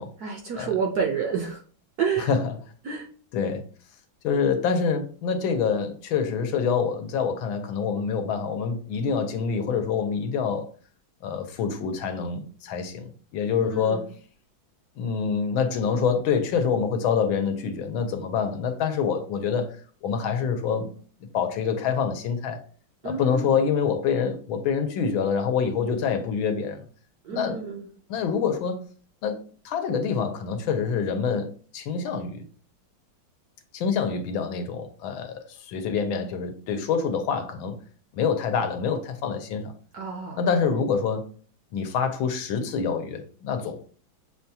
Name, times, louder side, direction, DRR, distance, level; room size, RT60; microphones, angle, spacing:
voice 1, 0.2-1.6 2.0-2.3 2.8-3.1 13.6-14.1 23.0-23.5 27.2-27.8 39.9-40.4, right 6 dB, 65° right, 1 dB, 1.0 m, -29 dB
voice 2, 2.2-2.6 3.3-3.6 4.2-10.7 11.2-14.1 15.0-19.8 20.0-20.9 21.3-22.6 23.0-26.8 27.3-27.6 28.1-28.8 29.2-32.4 33.7-37.8 38.1-39.7 40.4-41.3 41.7-43.9, left 6 dB, 80° left, 6 dB, 1.5 m, -26 dB
6.7 x 2.3 x 2.7 m, 0.42 s
omnidirectional pair, 2.2 m